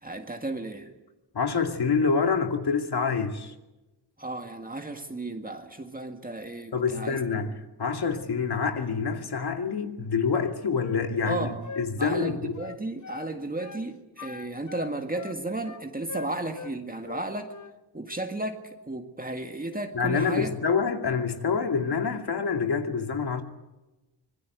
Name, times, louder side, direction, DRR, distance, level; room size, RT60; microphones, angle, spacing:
voice 1, 0.0-0.9 4.2-7.2 11.2-11.6 12.0-17.5 17.9-20.6, right 2 dB, 20° right, 1.9 m, -34 dB
voice 2, 1.3-3.5 6.7-12.6 19.9-23.4, left 5 dB, 65° left, 2.3 m, -27 dB
Wind instrument woodwind instrument, 10.3-13.3 13.6-13.8 14.2-16.7 17.0-17.7, left 5 dB, 45° left, 0.9 m, -41 dB
25.5 x 21.0 x 8.3 m
wide cardioid pair, 110°, 42 cm